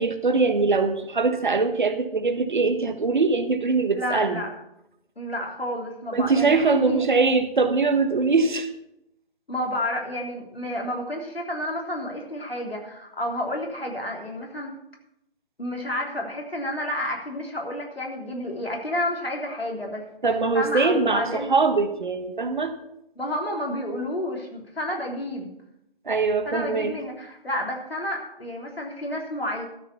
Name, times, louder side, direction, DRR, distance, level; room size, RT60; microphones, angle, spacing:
voice 1, 0.0-4.4 6.1-8.7 20.2-22.7 26.0-27.0, right 4 dB, 55° right, 10 dB, 1.3 m, -22 dB
voice 2, 3.9-4.5 5.2-7.1 9.5-14.7 15.6-20.1 20.5-21.5 23.2-25.5 26.4-29.7, left 1 dB, 80° left, 0 dB, 3.3 m, -30 dB
13.0 x 6.9 x 6.8 m, 0.81 s
figure-of-eight pair, 145°, 30 cm